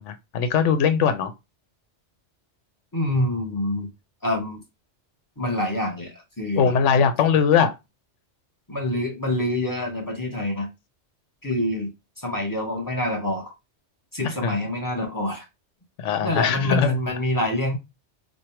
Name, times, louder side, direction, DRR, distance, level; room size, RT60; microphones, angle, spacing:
voice 1, 0.0-1.3 6.6-7.7 14.4-14.6 16.0-17.0, left 7 dB, 85° left, 1.0 m, -20 dB
voice 2, 2.9-3.9 4.2-4.6 5.4-6.7 8.7-10.7 11.4-11.9 12.2-13.5 14.1-15.4 16.2-17.8, left 1 dB, 20° left, 0.9 m, -26 dB
3.3 x 2.2 x 4.3 m
omnidirectional pair, 1.2 m